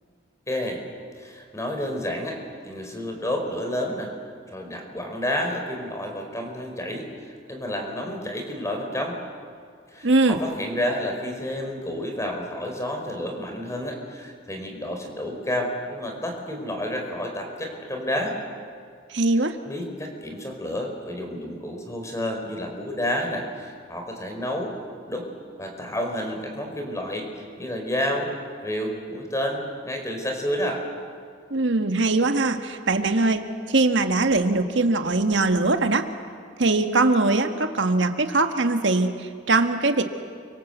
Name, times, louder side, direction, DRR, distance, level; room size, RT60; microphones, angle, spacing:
voice 1, 0.5-0.8 1.2-2.4 2.6-4.1 4.5-9.2 9.9-18.4 19.6-24.7 25.1-25.3 25.6-28.3 28.6-30.8, left 1 dB, 15° left, 2 dB, 4.7 m, -30 dB
voice 2, 10.0-10.4 19.1-19.6 31.5-36.0 36.6-40.0, right 2 dB, 80° right, 7 dB, 1.6 m, -21 dB
29.5 x 25.0 x 8.1 m, 2.1 s
head